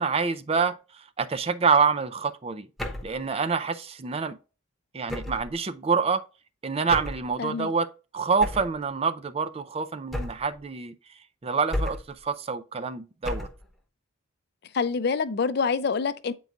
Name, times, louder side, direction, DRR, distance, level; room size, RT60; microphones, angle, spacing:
voice 1, 0.0-2.7 3.0-4.4 4.9-6.2 6.6-7.9 8.1-10.9 11.4-13.5, right 5 dB, 30° right, 0.4 m, -26 dB
sound 1, 2.8-3.2 5.1-5.5 6.9-7.3 8.4-8.8 10.1-10.6 11.7-12.2 13.2-13.7, left 1 dB, ahead, 0.9 m, -32 dB
voice 2, 7.4-7.7 14.7-16.3, left 5 dB, 55° left, 0.5 m, -26 dB
8.2 x 4.6 x 2.6 m
head